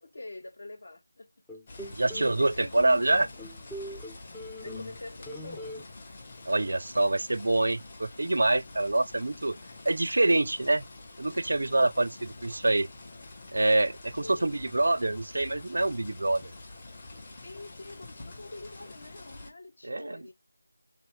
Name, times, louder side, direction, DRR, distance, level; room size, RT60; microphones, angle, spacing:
voice 1, 0.0-1.3 1.7-2.0 2.4-3.3 4.5-5.9 11.6-11.9 14.2-14.7 17.4-20.3, left 2 dB, 55° left, 1.4 m, -46 dB
sound 1, 1.5-2.3 2.8-5.0 5.3-5.8, left 1 dB, 5° left, 0.4 m, -41 dB
sound 2, 1.7-19.5, left 2 dB, 25° left, 1.1 m, -47 dB
voice 2, 1.9-3.3 6.5-9.6 9.9-10.8 11.2-12.9 13.5-16.4 19.8-20.2, right 2 dB, 65° right, 0.4 m, -26 dB
4.7 x 3.5 x 3.2 m
figure-of-eight pair, 170°, 0 cm